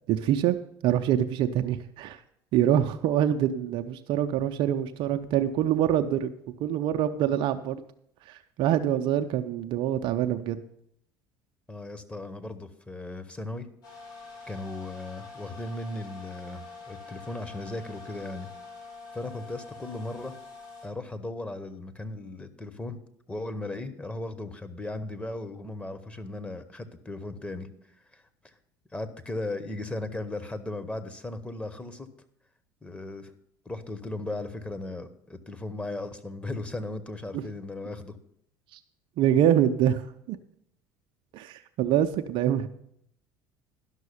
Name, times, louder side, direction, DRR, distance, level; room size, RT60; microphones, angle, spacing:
voice 1, 0.1-0.6 0.8-2.2 2.5-6.3 6.6-7.8 8.3-10.6 37.3-37.4 39.2-40.4 41.3-42.7, right 10 dB, 45° right, 6 dB, 0.6 m, -25 dB
voice 2, 11.7-13.7 14.5-18.5 19.1-20.3 20.8-23.0 23.3-27.7 28.1-28.5 28.9-32.1 32.8-33.3 33.6-38.2, left 2 dB, 10° left, 9 dB, 1.0 m, -37 dB
sound 1, 13.8-20.9, left 4 dB, 70° left, 5.5 m, -45 dB
11.5 x 6.2 x 6.9 m, 0.72 s
figure-of-eight pair, 65°, 11 cm